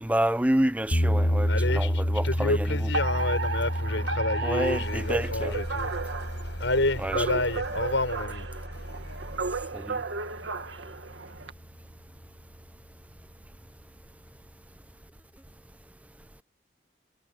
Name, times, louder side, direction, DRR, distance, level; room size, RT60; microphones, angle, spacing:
voice 1, 0.0-2.9 4.4-5.5 7.0-7.3 9.7-10.0, right 1 dB, 10° right, 0.6 m, -28 dB
sound 1, 0.9-10.9, equal, 50° left, 3.6 m, -30 dB
voice 2, 1.5-5.9 6.6-8.5, left 2 dB, 85° left, 6.0 m, -29 dB
sound 2, 2.0-9.9, left 1 dB, 65° left, 7.6 m, -44 dB
Alarm, 2.9-11.5, right 3 dB, 85° right, 1.8 m, -34 dB
head